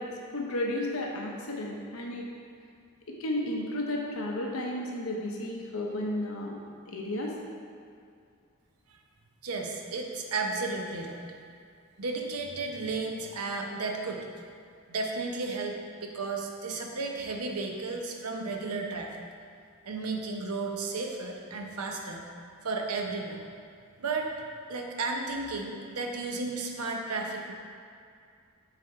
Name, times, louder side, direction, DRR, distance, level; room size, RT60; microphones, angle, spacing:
voice 1, 0.0-2.3 3.1-6.6 6.9-7.4, left 1 dB, 70° left, -1 dB, 0.9 m, -33 dB
voice 2, 9.4-11.2 12.0-14.3 14.9-19.1 19.8-22.3 22.6-23.4 24.0-24.3 24.7-27.5, right 3 dB, 85° right, 2 dB, 0.7 m, -33 dB
7.0 x 3.4 x 4.4 m, 2.3 s
head